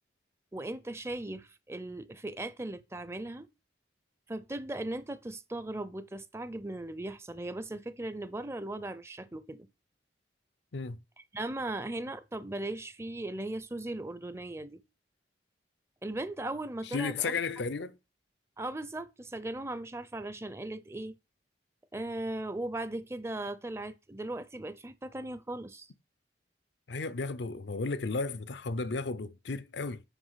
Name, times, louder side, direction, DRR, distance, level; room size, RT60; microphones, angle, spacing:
voice 1, 0.5-3.5 4.3-9.6 11.3-14.8 16.0-17.3 18.6-21.1 21.9-25.9, right 2 dB, 15° right, 0.6 m, -38 dB
voice 2, 16.9-18.0 26.9-30.0, left 4 dB, 70° left, 0.6 m, -34 dB
8.1 x 5.5 x 5.7 m
head